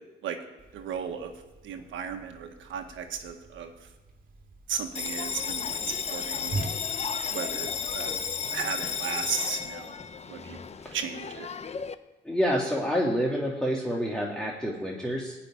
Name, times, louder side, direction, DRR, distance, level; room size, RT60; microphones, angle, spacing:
Whoosh swoosh swish, 0.6-8.3, right 3 dB, 45° right, 2.5 m, -43 dB
voice 1, 0.7-1.3 1.6-3.7 4.7-6.6 7.3-8.1 8.5-9.9 10.3-10.6 10.9-11.5, right 7 dB, 75° right, 5 dB, 1.5 m, -35 dB
Bell, 4.9-11.9, left 6 dB, 35° left, 0.8 m, -33 dB
voice 2, 12.2-15.3, equal, 5° left, -2 dB, 2.1 m, -28 dB
16.0 x 5.8 x 9.9 m, 1.1 s
cardioid pair, 90°, 20 cm